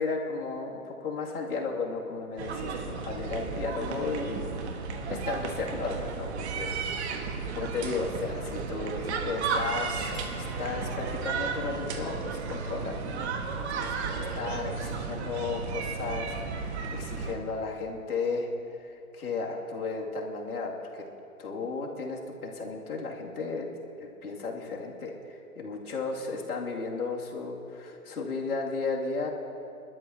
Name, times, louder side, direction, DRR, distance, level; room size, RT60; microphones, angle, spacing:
voice 1, 0.0-6.9 7.5-21.0 21.4-23.7 24.0-29.3, left 4 dB, 75° left, -1 dB, 2.6 m, -34 dB
sound 1, 2.4-17.4, right 5 dB, 50° right, 1.5 m, -34 dB
sound 2, 10.1-12.3, equal, 10° left, 3.9 m, -52 dB
27.5 x 12.5 x 2.8 m, 2.8 s
hypercardioid pair, 130°, 44 cm